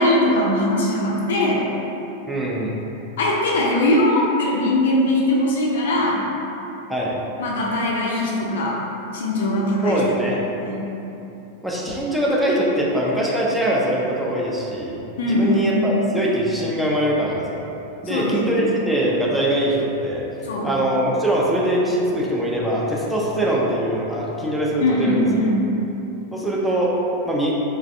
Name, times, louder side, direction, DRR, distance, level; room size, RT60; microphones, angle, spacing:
voice 1, 0.0-1.6 3.2-6.2 7.4-8.8 9.1-10.9 15.2-15.6 18.1-18.6 20.4-20.7 24.8-25.7, left 1 dB, 60° left, -3 dB, 0.4 m, -21 dB
voice 2, 2.3-2.8 6.9-7.2 9.8-10.4 11.6-17.6 18.0-20.2 20.6-25.2 26.3-26.9 27.2-27.5, right 1 dB, 5° right, -5 dB, 0.4 m, -22 dB
3.1 x 2.4 x 2.5 m, 2.9 s
figure-of-eight pair, 90°, 0 cm